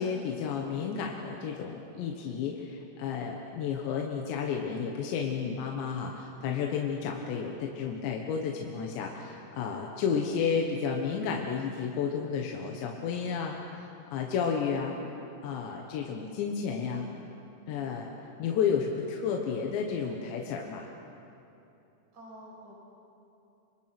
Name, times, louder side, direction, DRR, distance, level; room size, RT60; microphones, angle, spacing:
voice 1, 0.0-14.9 15.4-17.1 17.7-18.1 18.4-20.9, left 6 dB, 75° left, 1 dB, 3.5 m, -32 dB
voice 2, 22.1-22.7, equal, 40° right, -4 dB, 7.4 m, -49 dB
27.0 x 26.0 x 6.0 m, 2.8 s
omnidirectional pair, 5.2 m